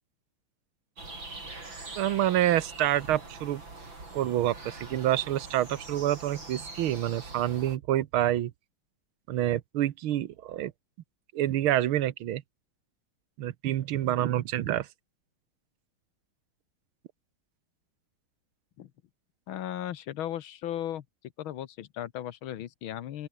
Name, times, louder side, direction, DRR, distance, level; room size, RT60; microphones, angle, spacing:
sound 1, 1.0-7.8, right 2 dB, 65° right, 7.3 m, -43 dB
voice 1, 2.0-3.6 4.1-8.5 9.3-10.7 11.3-12.4 13.4-14.9, right 12 dB, 80° right, 1.8 m, -27 dB
voice 2, 19.5-21.0 21.4-23.3, left 11 dB, 75° left, 1.8 m, -36 dB
open air
omnidirectional pair, 2.3 m